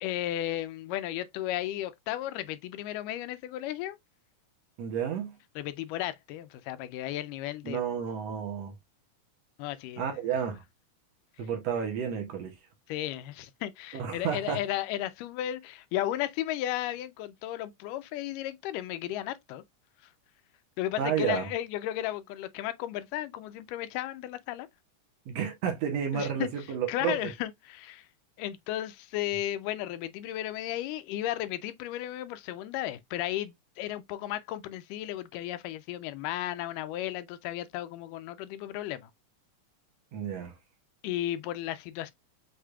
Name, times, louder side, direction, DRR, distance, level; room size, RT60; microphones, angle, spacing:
voice 1, 0.0-4.0 5.6-7.8 9.6-10.0 12.9-19.6 20.8-24.7 26.1-26.5 26.9-28.1 28.4-39.1 41.0-42.1, left 13 dB, 90° left, 2.2 m, -34 dB
voice 2, 4.8-5.4 7.6-8.7 10.0-10.6 11.4-12.6 13.9-14.6 21.0-21.5 25.3-27.3 40.1-40.6, right 8 dB, 65° right, 1.9 m, -31 dB
6.5 x 3.3 x 2.3 m
omnidirectional pair, 3.7 m